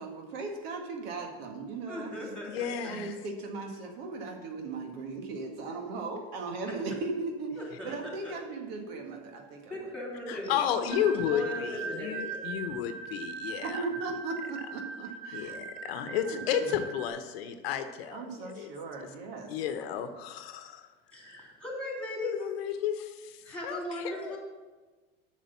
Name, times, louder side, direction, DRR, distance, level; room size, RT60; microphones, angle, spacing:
voice 1, 0.0-2.1 2.9-7.5 7.8-9.8 13.6-16.7 18.1-19.5, right 3 dB, 75° right, 3 dB, 1.8 m, -38 dB
voice 2, 1.9-3.0 7.6-8.0 8.2-8.3 9.7-10.6 11.0-12.2 21.1-22.5 23.5-24.4, left 1 dB, 5° left, -2 dB, 3.3 m, -38 dB
voice 3, 2.4-3.1 10.3-13.8 15.3-18.7 19.5-20.9 22.2-24.4, left 9 dB, 80° left, 8 dB, 0.9 m, -32 dB
sound 1, 10.9-17.1, right 5 dB, 50° right, 3.0 m, -40 dB
7.5 x 6.4 x 7.0 m, 1.3 s
supercardioid pair, 100°, 30 cm